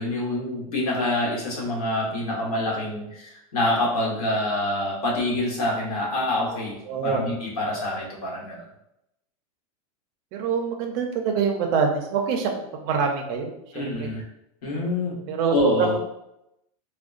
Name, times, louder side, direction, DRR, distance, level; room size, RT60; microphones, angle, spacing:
voice 1, 0.0-6.8 7.0-8.6 13.7-14.2 14.6-15.2 15.5-15.9, left 1 dB, 80° left, -3 dB, 1.3 m, -26 dB
voice 2, 6.9-7.3 10.3-12.5 12.8-13.5 13.7-14.1 15.3-15.5 15.8-16.0, right 5 dB, 30° right, 2 dB, 0.4 m, -25 dB
3.5 x 2.2 x 2.4 m, 0.83 s
supercardioid pair, 175°, 19 cm